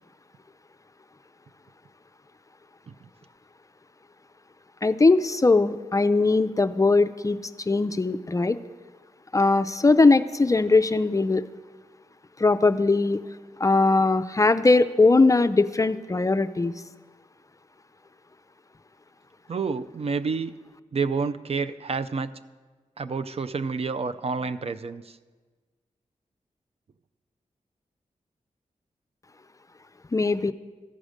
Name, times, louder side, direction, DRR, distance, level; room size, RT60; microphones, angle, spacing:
voice 1, 4.8-7.4 7.7-8.6 9.3-11.5 12.4-13.2 13.6-16.7 30.1-30.5, left 3 dB, 25° left, 13 dB, 0.4 m, -20 dB
voice 2, 19.5-20.5 20.9-22.3 23.0-25.2, right 4 dB, 50° right, 11 dB, 0.4 m, -29 dB
14.0 x 4.9 x 6.5 m, 1.4 s
cardioid pair, 55°, 13 cm